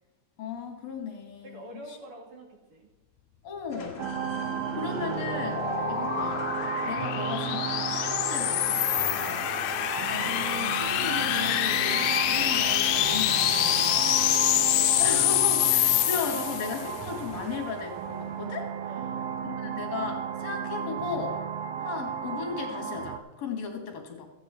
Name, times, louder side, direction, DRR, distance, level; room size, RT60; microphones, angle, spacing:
voice 1, 0.4-2.0 3.4-4.1 4.7-6.5 6.8-9.4 10.1-14.2 15.0-18.7 19.4-21.4 21.8-24.3, left 5 dB, 65° left, 3 dB, 2.5 m, -36 dB
voice 2, 1.4-2.9 9.4-9.6 14.1-14.9 18.9-19.2, right 1 dB, 55° right, 0 dB, 2.4 m, -46 dB
sound 1, 3.7-18.0, left 3 dB, 45° left, 1.0 m, -44 dB
sound 2, 4.0-23.2, right 7 dB, 75° right, 1.5 m, -34 dB
sound 3, 4.3-16.9, left 13 dB, 80° left, 1.7 m, -26 dB
14.0 x 8.6 x 4.3 m, 1.1 s
omnidirectional pair, 3.4 m